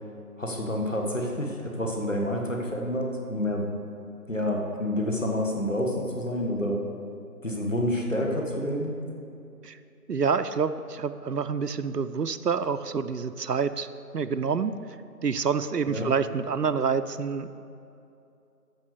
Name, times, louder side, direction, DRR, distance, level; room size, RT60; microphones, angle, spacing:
voice 1, 0.4-3.6 4.3-6.8 7.4-8.9 15.9-16.1, left 1 dB, 50° left, 1 dB, 1.5 m, -28 dB
voice 2, 10.1-13.9 14.1-14.7 15.2-17.5, right 6 dB, 75° right, 12 dB, 0.6 m, -27 dB
13.0 x 5.0 x 6.8 m, 2.6 s
figure-of-eight pair, 175°, 48 cm